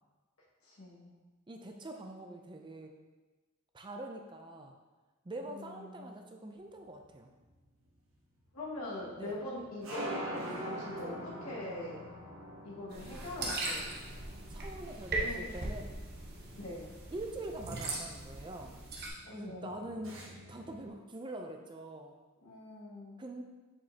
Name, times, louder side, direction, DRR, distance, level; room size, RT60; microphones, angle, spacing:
voice 1, 0.6-1.2 5.4-6.2 8.5-12.0 12.6-13.9 15.2-15.5 16.6-16.9 19.2-19.7 22.4-23.2, left 1 dB, 90° left, -6 dB, 1.9 m, -43 dB
voice 2, 1.5-2.9 3.7-4.7 5.2-7.3 9.2-9.4 14.5-16.0 17.1-18.8 19.3-22.2 23.2-23.4, right 1 dB, 20° right, 3 dB, 0.4 m, -44 dB
sound 1, 6.8-20.9, right 1 dB, 70° right, 1.4 m, -46 dB
sound 2, 12.9-19.1, right 2 dB, 45° right, 1.1 m, -39 dB
7.1 x 5.2 x 2.8 m, 1.2 s
head